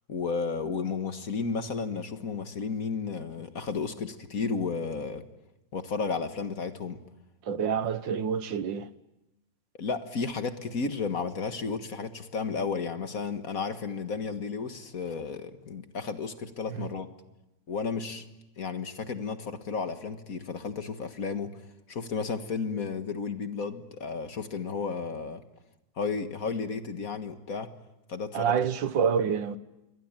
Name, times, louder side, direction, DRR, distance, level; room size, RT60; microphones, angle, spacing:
voice 1, 0.1-5.2 5.7-7.0 9.8-17.1 17.7-18.3 18.6-21.5 21.9-25.4 26.0-27.7 28.1-28.5, left 5 dB, 50° left, 1.9 m, -33 dB
voice 2, 7.4-8.9 16.7-16.9 28.3-29.6, right 7 dB, 90° right, 1.9 m, -27 dB
28.5 x 23.0 x 9.1 m
omnidirectional pair, 2.0 m